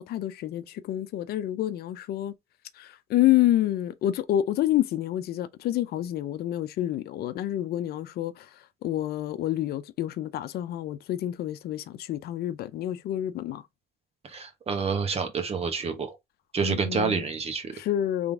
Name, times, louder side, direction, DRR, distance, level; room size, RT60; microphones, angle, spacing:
voice 1, 0.0-2.3 2.8-8.5 8.8-13.6 16.6-17.2 17.7-18.3, left 13 dB, 65° left, 0.6 m, -28 dB
voice 2, 14.2-16.2 16.5-17.8, right 5 dB, 35° right, 1.3 m, -28 dB
3.8 x 3.4 x 3.4 m
cardioid pair, 110°, 17 cm